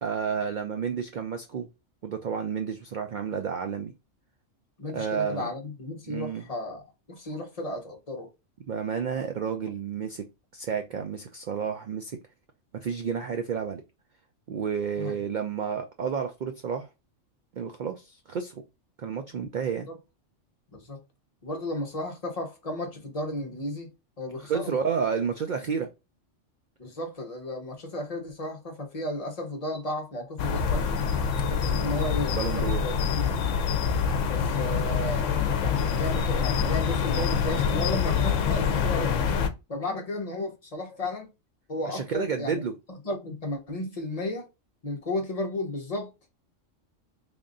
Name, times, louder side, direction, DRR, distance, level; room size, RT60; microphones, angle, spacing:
voice 1, 0.0-1.7 2.0-3.9 4.9-5.5 6.1-6.4 8.7-10.3 10.5-12.1 12.8-13.8 14.5-16.9 17.5-18.6 19.0-19.9 24.4-25.9 31.7-31.9 32.3-32.8 41.9-42.7, right 6 dB, 70° right, 0.4 m, -31 dB
voice 2, 4.8-6.8 7.1-8.3 15.0-15.3 19.9-20.0 20.7-21.0 21.4-23.9 24.2-24.7 26.8-30.9 31.4-33.6 34.2-39.2 39.7-41.3 41.7-42.6 42.9-44.5 44.8-46.1, left 1 dB, 35° left, 0.9 m, -34 dB
sound 1, 30.4-39.5, left 6 dB, 80° left, 1.0 m, -26 dB
3.5 x 2.4 x 3.7 m
omnidirectional pair, 1.3 m